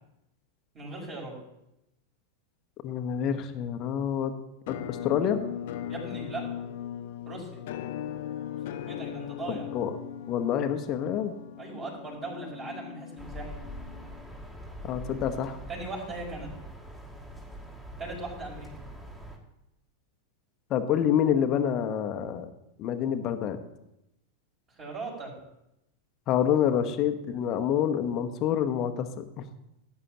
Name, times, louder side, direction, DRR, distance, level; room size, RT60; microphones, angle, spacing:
voice 1, 0.7-1.3 5.9-6.7 7.2-7.6 8.7-9.7 11.6-13.6 15.7-16.5 18.0-18.7 24.8-25.3, right 2 dB, 30° right, -2 dB, 4.9 m, -38 dB
voice 2, 2.8-4.3 4.7-5.4 9.5-9.9 10.3-11.3 14.8-15.6 20.7-22.5 22.8-23.6 26.3-29.5, left 9 dB, 35° left, 8 dB, 1.1 m, -27 dB
Musical instrument, 4.7-14.5, left 10 dB, 50° left, 0.7 m, -39 dB
sound 1, 13.2-19.4, equal, 10° right, 2.4 m, -43 dB
17.5 x 8.9 x 2.9 m, 0.85 s
figure-of-eight pair, 90°, 0 cm